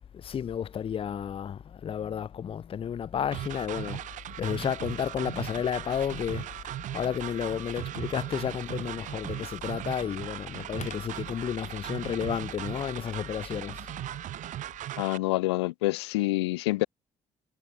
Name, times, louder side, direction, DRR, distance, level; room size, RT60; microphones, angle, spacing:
voice 1, 0.1-4.0 4.4-6.5 6.9-13.8, left 8 dB, 40° left, 0.5 m, -32 dB
sound 1, 3.3-15.2, right 13 dB, 65° right, 1.4 m, -38 dB
Telephone, 7.2-12.0, left 10 dB, 60° left, 7.1 m, -54 dB
voice 2, 15.0-16.9, left 20 dB, 90° left, 0.5 m, -27 dB
hypercardioid pair, 50°, 14 cm